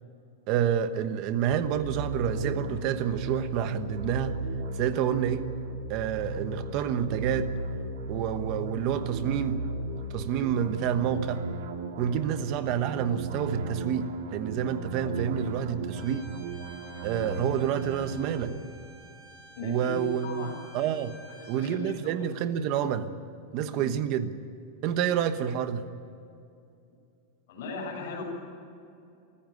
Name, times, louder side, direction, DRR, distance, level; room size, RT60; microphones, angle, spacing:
voice 1, 0.5-4.3 4.7-5.4 5.9-7.5 8.1-9.6 10.1-11.4 12.0-16.2 17.0-18.5 19.6-20.5 20.7-21.2 21.5-23.1 23.5-24.3 24.8-25.9, right 9 dB, 35° right, 10 dB, 1.1 m, -28 dB
sound 1, 1.5-18.6, right 3 dB, 65° right, 2.8 m, -36 dB
Bowed string instrument, 15.9-21.6, right 1 dB, 5° right, 5.0 m, -52 dB
voice 2, 19.6-20.6 21.5-22.1 23.7-23.9 27.5-28.2, left 3 dB, 50° left, -4 dB, 7.4 m, -37 dB
24.0 x 14.5 x 9.5 m, 2.6 s
supercardioid pair, 180°, 0 cm